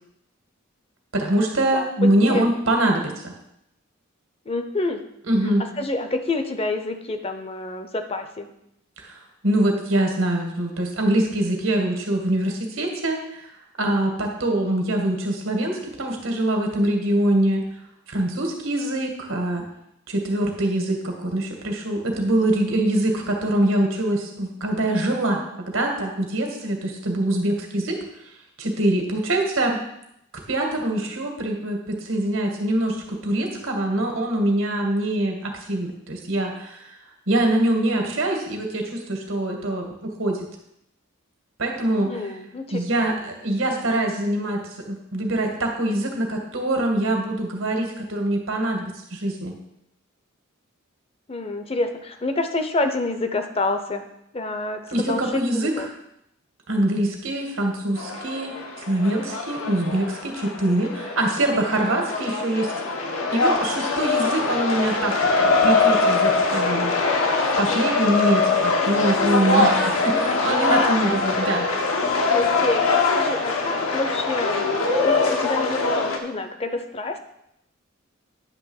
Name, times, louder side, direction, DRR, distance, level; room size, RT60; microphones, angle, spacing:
voice 1, 1.1-3.3 5.3-5.6 9.0-9.2 9.4-13.5 13.8-17.7 18.1-19.7 20.1-28.0 28.6-29.8 30.5-37.0 37.3-40.5 41.6-42.2 42.7-49.5 54.9-55.9 56.7-58.6 58.9-62.7 63.3-66.9 67.6-71.7, right 1 dB, 75° right, 2 dB, 1.8 m, -24 dB
voice 2, 4.5-5.0 5.8-8.5 42.0-42.8 51.3-54.0 54.3-55.9 70.0-70.9 72.3-77.2, left 2 dB, 30° left, 7 dB, 0.7 m, -28 dB
sound 1, 58.0-76.2, left 3 dB, 80° left, 1.1 m, -22 dB
9.9 x 3.5 x 7.2 m, 0.79 s
head